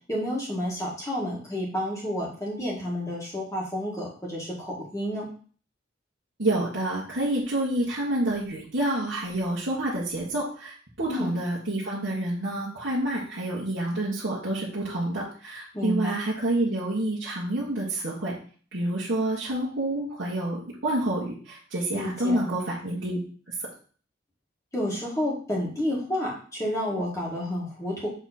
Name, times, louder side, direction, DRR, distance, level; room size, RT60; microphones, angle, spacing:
voice 1, 0.1-5.3 11.1-11.3 15.7-16.1 21.9-22.4 24.7-28.1, left 1 dB, 15° left, -4 dB, 2.0 m, -30 dB
voice 2, 6.4-18.3 18.7-23.2, right 1 dB, 65° right, -7 dB, 1.6 m, -28 dB
7.1 x 3.7 x 4.3 m, 0.43 s
head